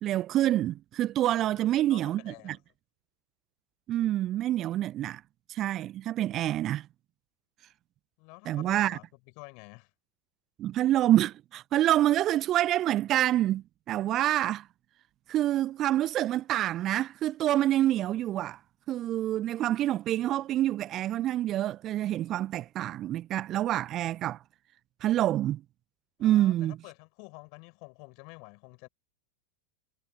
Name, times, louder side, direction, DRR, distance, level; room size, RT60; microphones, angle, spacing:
voice 1, 0.0-2.6 3.9-5.2 5.5-6.9 8.5-9.0 10.6-14.7 15.3-18.6 18.9-24.4 25.0-25.6 26.2-26.8, right 13 dB, 30° right, 0.9 m, -27 dB
voice 2, 1.6-2.6 8.2-9.9 26.2-28.9, left 38 dB, 45° left, 4.6 m, -49 dB
figure-of-eight pair, 90°, 0 cm